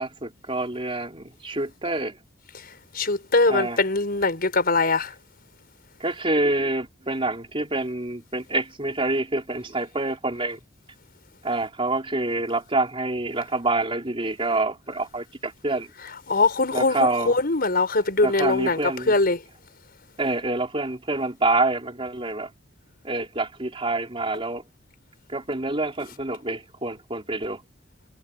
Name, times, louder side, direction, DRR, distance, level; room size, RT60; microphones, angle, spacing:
voice 1, 0.0-2.2 3.5-3.8 6.0-10.6 11.4-15.9 16.7-17.3 18.2-19.1 20.2-22.5 23.0-24.6 25.3-27.6, right 2 dB, 30° right, 3.5 m, -27 dB
voice 2, 2.6-5.1 16.3-18.8 19.1-19.4, left 3 dB, 50° left, 5.4 m, -22 dB
head